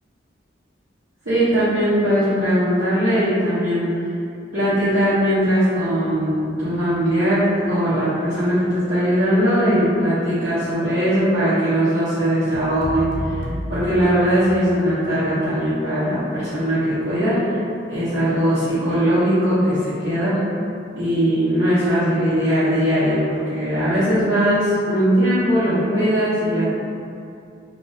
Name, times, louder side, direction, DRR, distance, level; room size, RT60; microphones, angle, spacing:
voice 1, 1.2-3.9 4.5-13.4 13.7-17.6 17.9-20.4 20.9-26.7, equal, 65° right, -16 dB, 1.0 m, -20 dB
sound 1, 12.5-14.8, left 1 dB, 75° left, 0.7 m, -30 dB
3.4 x 2.5 x 2.7 m, 2.6 s
head